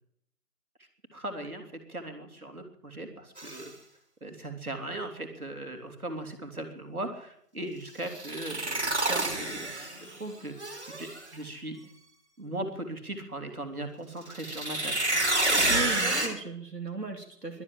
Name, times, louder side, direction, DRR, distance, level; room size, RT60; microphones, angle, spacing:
voice 1, 1.1-3.7 4.2-9.9 10.2-10.5 11.0-11.8 12.4-15.2, right 1 dB, 65° right, 4 dB, 3.4 m, -38 dB
sound 1, 3.4-3.6 8.1-10.1 10.6-11.2 14.3-16.3, right 2 dB, 45° right, 3.0 m, -28 dB
voice 2, 15.7-17.6, right 2 dB, 85° right, 3 dB, 2.8 m, -36 dB
23.5 x 7.9 x 7.6 m, 0.68 s
figure-of-eight pair, 165°, 48 cm